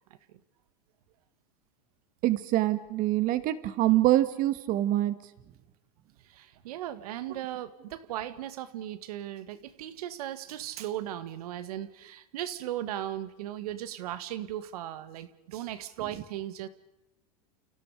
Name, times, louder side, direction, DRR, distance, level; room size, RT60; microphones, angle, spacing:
voice 1, 2.2-5.1, right 15 dB, 45° right, 12 dB, 2.3 m, -25 dB
voice 2, 6.2-16.7, right 12 dB, 75° right, 13 dB, 2.0 m, -37 dB
29.5 x 29.5 x 5.0 m, 0.96 s
supercardioid pair, 125°, 19 cm